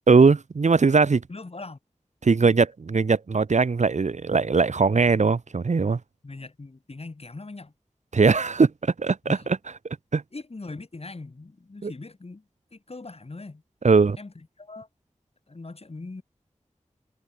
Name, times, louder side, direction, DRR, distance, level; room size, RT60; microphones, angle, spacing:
voice 1, 0.1-1.2 2.2-6.0 8.1-9.4 10.1-10.2 11.8-11.9 13.8-14.2, right 4 dB, 70° right, 0.9 m, -20 dB
voice 2, 1.3-1.8 6.2-7.7 9.2-9.5 10.3-12.4 12.7-13.6 14.2-14.9 15.5-16.2, left 3 dB, 55° left, 2.6 m, -40 dB
wide cardioid pair, 70°, 13 cm